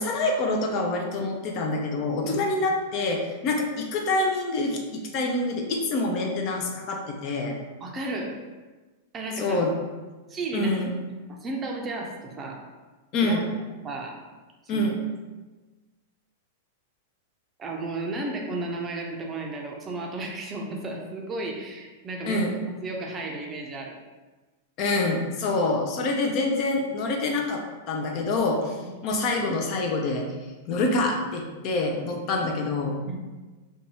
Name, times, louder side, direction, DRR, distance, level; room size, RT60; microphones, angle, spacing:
voice 1, 0.0-7.6 9.4-9.7 10.5-10.9 13.1-13.4 14.7-15.0 22.3-22.5 24.8-30.2 30.7-33.0, left 2 dB, 45° left, 1 dB, 0.5 m, -26 dB
voice 2, 7.8-8.4 9.1-9.6 10.3-10.8 11.3-12.6 13.2-13.4 13.8-14.1 14.7-14.9 17.6-22.5 22.8-24.0 28.8-28.9 33.0-33.2, right 2 dB, 25° right, 0 dB, 0.5 m, -33 dB
2.6 x 2.2 x 2.8 m, 1.2 s
hypercardioid pair, 110°, 0 cm